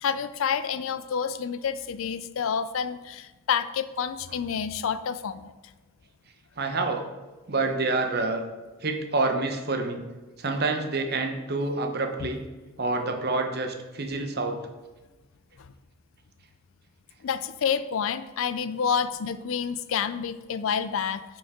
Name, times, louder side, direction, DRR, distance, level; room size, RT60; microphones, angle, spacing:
voice 1, 0.0-5.5 17.2-21.2, left 7 dB, 65° left, 13 dB, 0.4 m, -28 dB
voice 2, 6.6-7.0 7.5-8.4 8.8-10.0 10.4-12.4 12.8-14.6, right 3 dB, 45° right, 5 dB, 0.9 m, -27 dB
9.3 x 5.2 x 3.7 m, 1.2 s
head